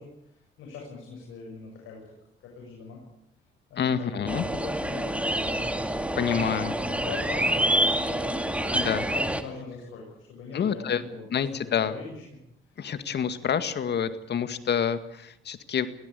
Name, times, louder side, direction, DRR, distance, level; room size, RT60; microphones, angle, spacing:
voice 1, 0.0-2.0 2.4-3.0 3.7-5.7 6.3-12.2 12.6-12.8, left 4 dB, 85° left, -1 dB, 7.9 m, -41 dB
voice 2, 3.8-4.5 6.1-6.7 8.7-9.0 10.5-11.0 11.3-12.0 12.8-15.9, left 7 dB, 60° left, 10 dB, 2.1 m, -27 dB
sound 1, 4.3-9.4, right 1 dB, 5° right, 2.4 m, -27 dB
23.5 x 17.0 x 8.4 m, 0.78 s
cardioid pair, 90°, 20 cm